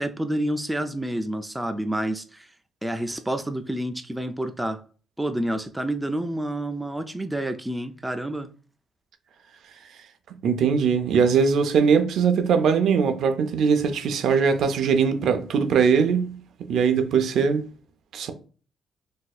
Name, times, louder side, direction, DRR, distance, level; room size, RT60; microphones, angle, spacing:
voice 1, 0.0-2.5 2.8-4.8 5.2-8.5, right 1 dB, 10° right, 0.4 m, -28 dB
voice 2, 10.4-17.6 18.1-18.3, right 6 dB, 70° right, 0.5 m, -21 dB
4.1 x 2.7 x 2.3 m
cardioid pair, 90°, 0 cm